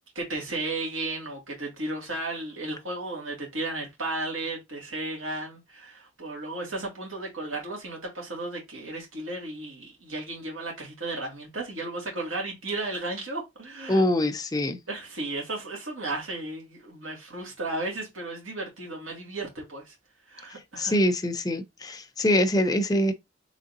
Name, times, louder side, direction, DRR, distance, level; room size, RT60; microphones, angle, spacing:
voice 1, 0.2-14.0 14.9-19.9 20.3-20.9, right 2 dB, 85° right, 2.1 m, -34 dB
voice 2, 13.9-14.8 20.8-23.1, left 1 dB, 20° left, 0.5 m, -24 dB
4.1 x 3.6 x 2.6 m
head